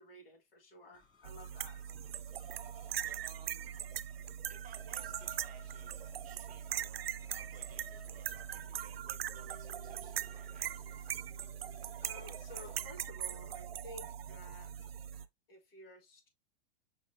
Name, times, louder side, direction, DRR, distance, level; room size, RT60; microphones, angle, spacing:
voice 1, 0.0-1.8 12.0-14.7 15.5-16.3, left 1 dB, 75° left, 2.2 m, -53 dB
sound 1, 0.9-13.8 14.1-15.3, left 2 dB, 15° left, 1.1 m, -63 dB
sound 2, 1.2-15.3, right 10 dB, 80° right, 0.5 m, -41 dB
voice 2, 2.7-4.0 4.5-10.8, right 8 dB, 30° right, 1.1 m, -60 dB
5.6 x 3.3 x 2.7 m
hypercardioid pair, 105°, 29 cm